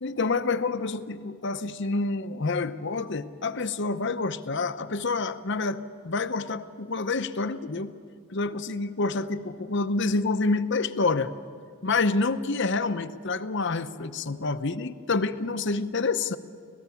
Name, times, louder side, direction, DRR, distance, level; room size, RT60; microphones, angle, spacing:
voice 1, 0.0-7.9 8.3-11.3 11.8-16.4, left 3 dB, 55° left, 10 dB, 0.8 m, -28 dB
27.0 x 18.0 x 7.1 m, 2.2 s
head